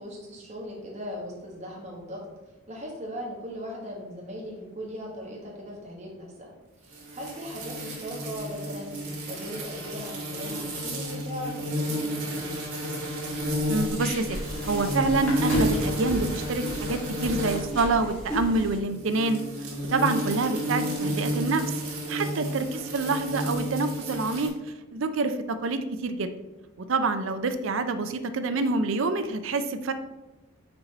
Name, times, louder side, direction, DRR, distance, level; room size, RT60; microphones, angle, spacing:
voice 1, 0.0-2.2 2.7-6.5 6.8-12.6 22.2-22.5, equal, 30° right, -2 dB, 1.4 m, -39 dB
sound 1, 6.9-17.8 18.8-24.5, equal, 85° right, 2.0 m, -32 dB
sound 2, 13.2-18.8, left 1 dB, 5° left, 1.8 m, -34 dB
voice 2, 13.7-14.4 14.6-19.4 19.9-21.6 22.1-24.5 24.9-26.3 26.8-29.9, right 3 dB, 60° right, 9 dB, 0.5 m, -27 dB
5.6 x 4.0 x 4.2 m, 1.1 s
head